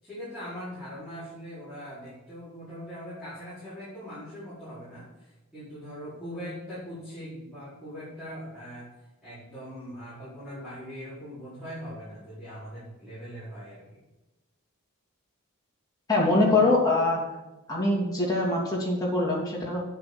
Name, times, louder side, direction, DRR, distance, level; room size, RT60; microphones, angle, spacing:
voice 1, 0.0-8.9 9.2-14.0, equal, 5° right, -13 dB, 4.7 m, -41 dB
voice 2, 16.1-17.2 17.7-19.9, left 2 dB, 15° left, -5 dB, 3.0 m, -23 dB
8.9 x 8.4 x 6.4 m, 1.0 s
head